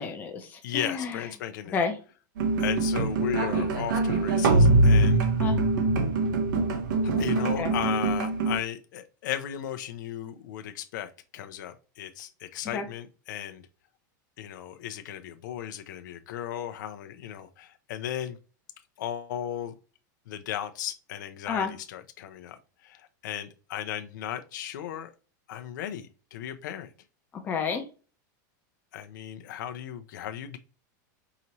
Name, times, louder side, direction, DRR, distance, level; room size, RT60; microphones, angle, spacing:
voice 1, 0.0-1.2 1.7-1.9 5.4-5.6 7.6-7.7 12.7-12.8 21.5-21.7 27.4-27.8, left 5 dB, 15° left, 0.7 m, -30 dB
voice 2, 0.6-1.8 2.6-5.3 7.2-13.6 14.4-18.4 19.0-19.7 20.3-25.1 25.5-26.9 28.9-30.6, left 10 dB, 70° left, 0.6 m, -36 dB
sound 1, 2.4-8.6, right 2 dB, 75° right, 1.0 m, -23 dB
4.9 x 2.7 x 3.0 m
supercardioid pair, 170°, 10 cm